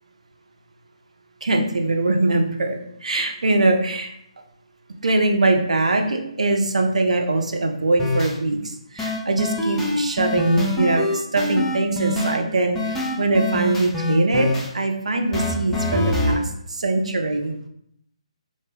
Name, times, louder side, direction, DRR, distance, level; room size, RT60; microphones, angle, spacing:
voice 1, 1.4-4.1 5.0-17.5, right 2 dB, 75° right, 3 dB, 0.5 m, -22 dB
sound 1, 8.0-8.3 9.0-12.4 12.8-14.7 15.3-16.4, left 1 dB, 10° left, 0.4 m, -24 dB
2.1 x 2.1 x 3.2 m, 0.71 s
figure-of-eight pair, 145°, 4 cm